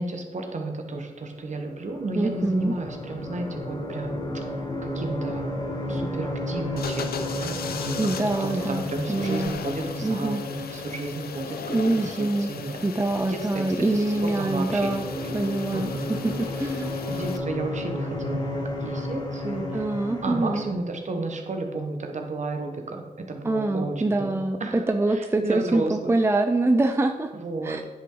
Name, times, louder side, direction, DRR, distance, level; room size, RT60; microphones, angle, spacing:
voice 1, 0.0-4.4 4.8-5.5 5.8-8.0 8.4-12.2 12.5-12.8 13.2-16.0 17.1-19.8 20.2-24.8 25.1-26.1 27.3-27.8, right 2 dB, 50° right, 3 dB, 1.4 m, -32 dB
sound 1, 1.3-20.7, left 1 dB, 25° left, 1.8 m, -34 dB
voice 2, 2.1-2.7 8.0-9.6 10.0-10.4 11.7-12.5 12.8-15.1 15.3-17.0 19.7-20.7 23.4-27.3 27.6-27.8, right 2 dB, 15° right, 6 dB, 0.5 m, -25 dB
sound 2, 6.8-17.4, left 6 dB, 85° left, 0.6 m, -37 dB
9.8 x 5.6 x 3.9 m, 1.3 s
wide cardioid pair, 90°, 15 cm